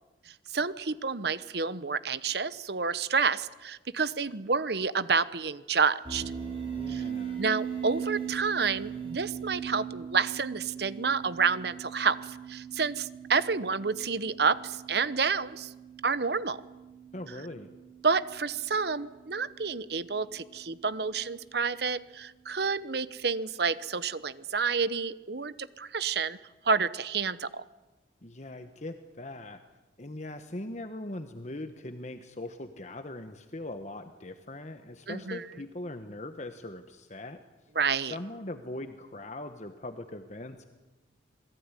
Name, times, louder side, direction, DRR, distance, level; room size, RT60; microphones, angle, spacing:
voice 1, 0.3-6.2 6.9-7.0 7.4-15.7 16.0-16.6 18.0-26.4 26.6-27.6 35.1-35.4 37.8-38.1, right 5 dB, 55° right, 16 dB, 1.0 m, -29 dB
sound 1, 6.0-21.1, right 7 dB, 30° right, 7.5 m, -40 dB
voice 2, 6.6-7.4 17.1-17.7 28.2-29.6 30.0-37.4 38.0-40.7, left 1 dB, 40° left, 7 dB, 1.2 m, -41 dB
27.0 x 20.0 x 9.9 m, 1.1 s
head